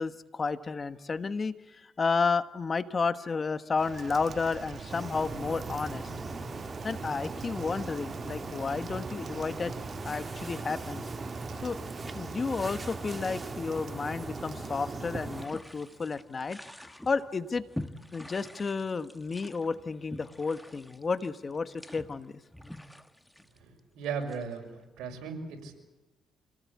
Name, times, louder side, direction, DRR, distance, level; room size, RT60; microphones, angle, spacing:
voice 1, 0.0-6.0 6.8-9.7 10.0-11.1 11.6-11.8 12.1-17.6 18.1-22.4, left 4 dB, 35° left, 12 dB, 1.2 m, -32 dB
Rain, 3.8-16.2, right 6 dB, 55° right, 1.2 m, -46 dB
sound 1, 4.9-15.5, right 3 dB, 25° right, 2.5 m, -39 dB
sound 2, 15.2-24.8, left 1 dB, 5° left, 1.3 m, -46 dB
voice 2, 23.6-25.8, right 5 dB, 85° right, 3 dB, 5.8 m, -37 dB
27.0 x 18.5 x 8.6 m, 1.1 s
cardioid pair, 90°, 0 cm